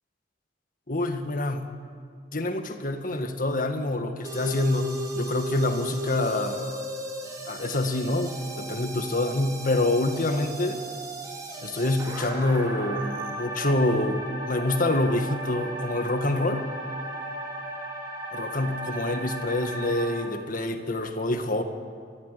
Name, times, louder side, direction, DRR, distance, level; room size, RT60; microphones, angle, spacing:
voice 1, 0.9-1.8 2.3-6.9 7.5-10.8 11.6-16.7 18.3-21.6, left 2 dB, 50° left, 6 dB, 1.8 m, -26 dB
sound 1, 4.2-20.2, right 1 dB, 20° right, 4.0 m, -36 dB
23.0 x 15.0 x 9.9 m, 2.2 s
head